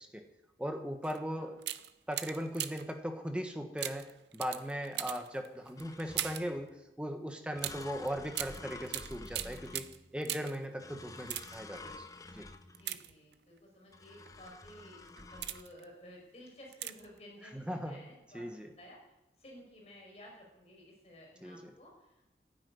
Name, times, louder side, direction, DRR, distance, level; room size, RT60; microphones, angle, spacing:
voice 1, 0.6-1.6 2.1-6.7 7.0-9.8 10.1-12.0 12.3-12.5 17.5-18.0 18.3-18.7 21.4-21.7, equal, 5° right, 5 dB, 1.4 m, -38 dB
sound 1, 1.0-1.2 1.6-3.0 3.8-6.6 7.6-10.7 11.1-11.8 12.7-13.6 14.3-14.5 15.0-15.8 16.7-17.2 17.4-17.5, right 13 dB, 75° right, 0.7 m, -40 dB
sound 2, 5.8-6.6 7.6-10.2 10.8-13.0 13.9-15.6, left 2 dB, 20° left, 0.8 m, -50 dB
voice 2, 12.8-19.0 19.4-22.3, equal, 35° left, -1 dB, 5.2 m, -54 dB
12.0 x 10.5 x 9.5 m, 0.93 s
head